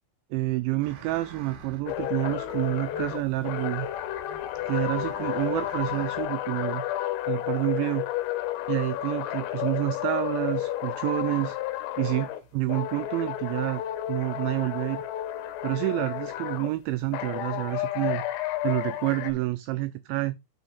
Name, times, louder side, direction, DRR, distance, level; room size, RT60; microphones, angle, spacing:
voice 1, 0.3-3.9 4.7-6.8 7.3-8.1 8.7-11.6 12.0-13.8 14.1-15.0 15.6-18.2 18.6-20.4, right 18 dB, 90° right, 2.6 m, -28 dB
sound 1, 0.8-6.2, right 4 dB, 60° right, 3.4 m, -48 dB
sound 2, 1.9-12.4 12.7-16.7 17.1-19.3, left 13 dB, 90° left, 3.4 m, -31 dB
9.1 x 4.2 x 5.0 m
omnidirectional pair, 5.8 m